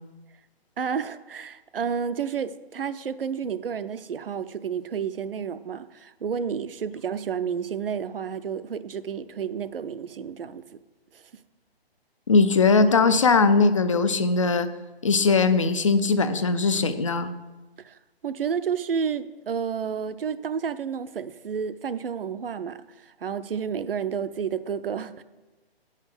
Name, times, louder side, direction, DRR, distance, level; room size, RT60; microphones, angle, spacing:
voice 1, 0.8-10.6 11.1-11.2 17.8-18.0 18.2-25.2, right 7 dB, 65° right, 0.6 m, -31 dB
voice 2, 12.3-14.7 15.0-17.3, left 4 dB, 35° left, 0.4 m, -20 dB
8.6 x 5.7 x 6.1 m
figure-of-eight pair, 145°, 31 cm